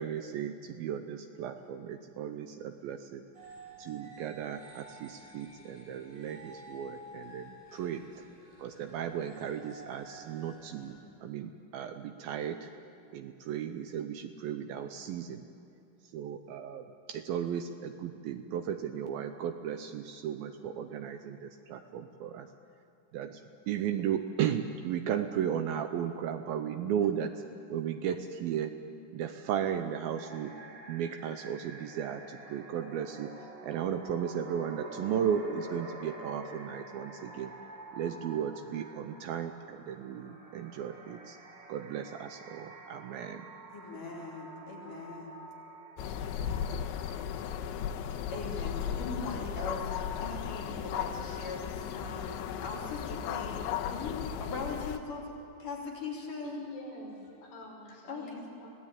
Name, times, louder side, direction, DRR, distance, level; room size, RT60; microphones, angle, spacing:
voice 1, 0.0-3.2 3.8-8.0 8.6-12.7 13.1-15.5 16.1-22.5 23.1-23.4 23.7-27.3 27.7-28.7 29.1-30.5 30.9-33.3 33.6-37.5 37.9-41.4 41.7-43.4, right 9 dB, 85° right, 7 dB, 2.1 m, -35 dB
sound 1, 3.3-10.9, right 1 dB, 60° right, 8.0 m, -52 dB
sound 2, 30.1-49.0, right 1 dB, 30° right, 2.5 m, -48 dB
voice 2, 43.7-45.4 48.3-55.3 55.6-56.6 58.1-58.5, left 3 dB, 50° left, -2 dB, 4.2 m, -40 dB
sound 3, 46.0-55.0, left 8 dB, 90° left, 3.3 m, -36 dB
voice 3, 56.4-58.7, left 2 dB, 70° left, -2 dB, 7.9 m, -46 dB
26.5 x 17.0 x 9.1 m, 2.6 s
omnidirectional pair, 5.2 m